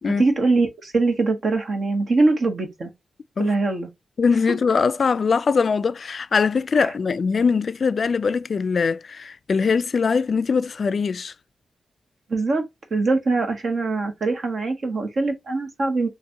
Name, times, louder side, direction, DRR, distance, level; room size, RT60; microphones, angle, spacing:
voice 1, 0.2-2.9 3.4-3.9 4.5-4.6 12.3-12.6 12.9-16.1, right 3 dB, 60° right, 1.2 m, -22 dB
voice 2, 4.2-11.3, left 5 dB, 60° left, 0.3 m, -22 dB
3.9 x 2.5 x 2.7 m
cardioid pair, 75°, 0 cm